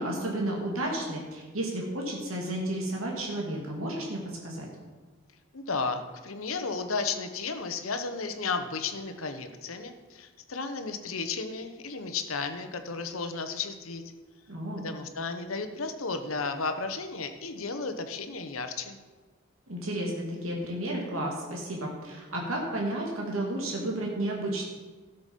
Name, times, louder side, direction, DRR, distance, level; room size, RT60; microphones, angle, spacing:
voice 1, 0.0-4.7 14.5-14.9 19.7-24.6, right 1 dB, 85° right, -2 dB, 2.1 m, -32 dB
voice 2, 5.5-14.0 14.8-19.0, left 4 dB, 85° left, 8 dB, 1.0 m, -33 dB
12.5 x 6.8 x 5.3 m, 1.3 s
head